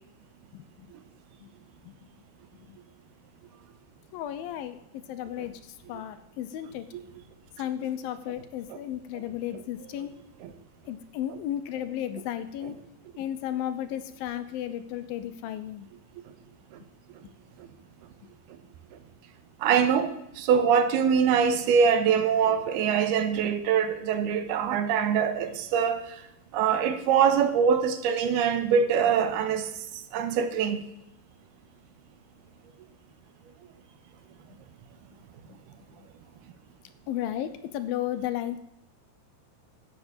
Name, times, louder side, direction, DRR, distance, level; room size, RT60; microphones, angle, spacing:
voice 1, 0.5-0.9 1.4-1.5 1.8-1.9 2.7-2.8 4.1-6.9 7.6-10.1 10.9-12.8 13.2-15.9 35.5-35.6 37.1-38.6, left 11 dB, 75° left, 2.4 m, -34 dB
voice 2, 19.6-20.1 20.4-26.2 26.5-29.7 30.1-30.8, right 7 dB, 85° right, 3.1 m, -23 dB
12.0 x 8.9 x 8.1 m
omnidirectional pair, 4.5 m